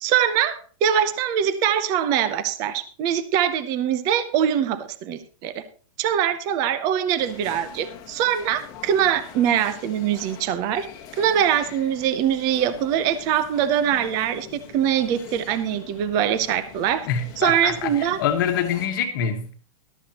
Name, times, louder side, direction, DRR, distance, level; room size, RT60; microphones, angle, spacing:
voice 1, 0.0-5.6 6.0-10.9 11.2-14.5 14.7-17.1 17.4-18.2, right 9 dB, 20° right, 13 dB, 0.6 m, -23 dB
sound 1, 7.2-18.9, left 8 dB, 20° left, 1.2 m, -44 dB
voice 2, 17.1-19.6, left 8 dB, 35° left, 6 dB, 1.4 m, -25 dB
14.0 x 12.0 x 2.9 m, 0.39 s
supercardioid pair, 175°, 18 cm